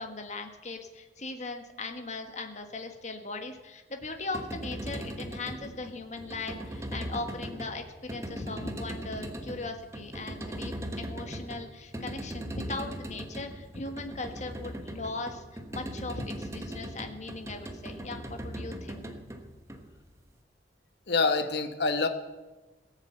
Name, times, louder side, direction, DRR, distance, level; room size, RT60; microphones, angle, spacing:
voice 1, 0.0-19.0, left 3 dB, 40° left, 5 dB, 1.5 m, -39 dB
sound 1, 4.1-20.3, right 1 dB, 15° right, 1.2 m, -39 dB
voice 2, 21.1-22.1, left 3 dB, 65° left, 8 dB, 1.3 m, -26 dB
18.0 x 7.3 x 8.0 m, 1.2 s
head